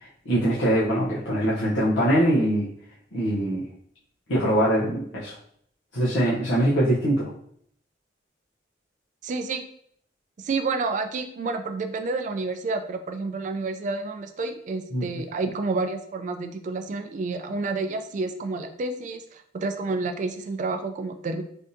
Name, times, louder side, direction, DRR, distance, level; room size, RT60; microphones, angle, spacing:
voice 1, 0.0-2.7 3.1-3.6 4.3-5.4 5.9-7.3 14.9-15.0, right 1 dB, 80° left, -8 dB, 0.7 m, -23 dB
voice 2, 9.2-9.7 10.4-21.4, right 3 dB, 45° right, 7 dB, 0.3 m, -29 dB
3.4 x 2.6 x 2.6 m, 0.65 s
head